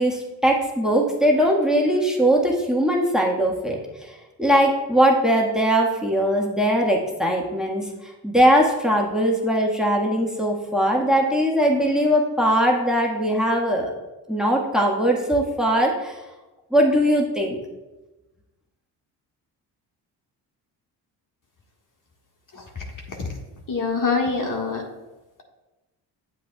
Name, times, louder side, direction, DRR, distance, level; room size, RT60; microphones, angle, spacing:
voice 1, 0.0-3.8 4.4-7.9 8.2-13.9 14.3-16.1 16.7-17.6, equal, ahead, -1 dB, 1.5 m, -20 dB
voice 2, 23.7-24.8, left 4 dB, 40° left, 0 dB, 1.7 m, -24 dB
8.3 x 7.8 x 2.3 m, 1.1 s
hypercardioid pair, 50°, 47 cm